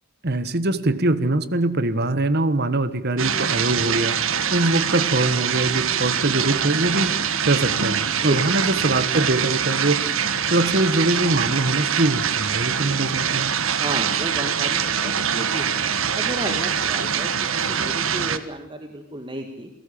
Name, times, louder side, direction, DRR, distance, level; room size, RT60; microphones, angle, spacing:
voice 1, 0.2-4.2 4.5-7.1 7.4-10.0 10.5-13.5, right 2 dB, 50° right, 14 dB, 1.4 m, -22 dB
sound 1, 3.2-18.4, right 7 dB, 70° right, 1.5 m, -24 dB
voice 2, 13.8-15.8 16.1-19.7, right 1 dB, 25° right, 4 dB, 2.0 m, -32 dB
28.5 x 19.0 x 8.7 m, 0.83 s
head